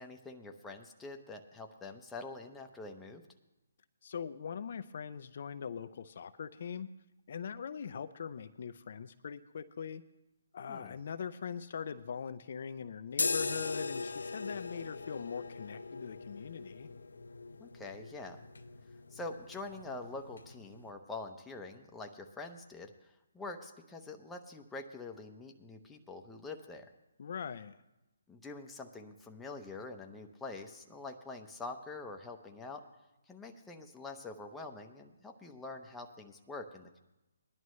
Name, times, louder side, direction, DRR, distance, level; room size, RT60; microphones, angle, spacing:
voice 1, 0.0-3.2 10.7-10.9 17.6-18.4 19.1-26.9 28.3-32.8 33.3-37.0, left 3 dB, 5° left, 2 dB, 0.8 m, -45 dB
voice 2, 4.0-6.9 7.3-10.0 10.5-16.9 27.2-27.8, left 7 dB, 55° left, 11 dB, 0.5 m, -41 dB
sound 1, 13.1-20.9, left 3 dB, 90° left, 0.7 m, -40 dB
19.5 x 11.0 x 3.2 m, 0.96 s
hypercardioid pair, 155°, 0 cm